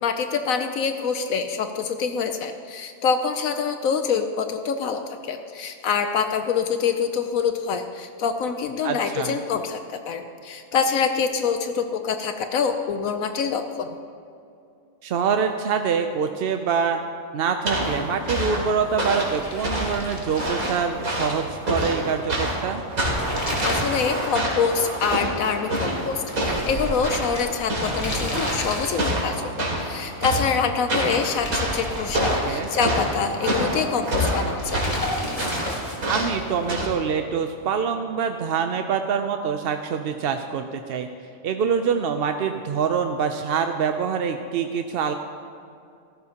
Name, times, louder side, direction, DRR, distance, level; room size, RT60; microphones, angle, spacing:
voice 1, 0.0-14.0 23.6-34.8, left 6 dB, 80° left, 7 dB, 1.1 m, -25 dB
voice 2, 8.8-9.4 15.0-17.0 17.3-22.8 32.5-32.7 36.1-41.1 41.4-45.1, right 6 dB, 60° right, 6 dB, 0.6 m, -25 dB
sound 1, 17.7-36.9, right 1 dB, 90° right, 3.1 m, -27 dB
sound 2, 19.0-21.5 21.8-21.9 22.9-24.3 24.6-24.7 26.3-29.4 31.0-33.0 34.6-36.3, left 1 dB, 25° left, 1.8 m, -32 dB
16.0 x 14.0 x 2.9 m, 2.5 s
omnidirectional pair, 1.5 m